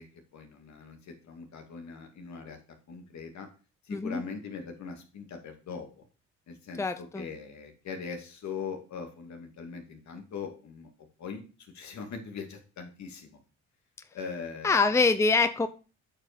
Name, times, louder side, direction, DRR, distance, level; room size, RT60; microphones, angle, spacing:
voice 1, 0.0-2.6 2.9-3.5 3.8-6.0 6.5-10.9 11.2-13.4 14.1-15.0, left 5 dB, 65° left, 4 dB, 2.4 m, -41 dB
voice 2, 3.9-4.2 6.8-7.3 14.6-15.7, left 4 dB, 10° left, 11 dB, 0.6 m, -24 dB
8.5 x 5.3 x 5.1 m, 0.34 s
cardioid pair, 90°, 30 cm